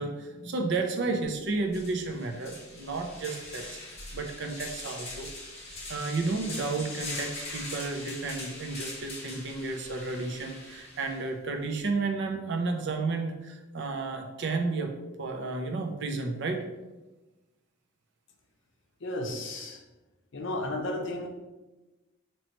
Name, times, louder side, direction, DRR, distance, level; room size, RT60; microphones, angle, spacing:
voice 1, 0.0-5.3 5.9-14.9 15.2-16.6, right 3 dB, 55° right, 3 dB, 0.5 m, -32 dB
sound 1, 1.2-1.3 1.7-11.2, left 2 dB, 30° left, 1.3 m, -42 dB
voice 2, 19.0-19.8 20.3-21.3, left 1 dB, 60° left, 2 dB, 0.6 m, -33 dB
3.0 x 3.0 x 4.2 m, 1.1 s
head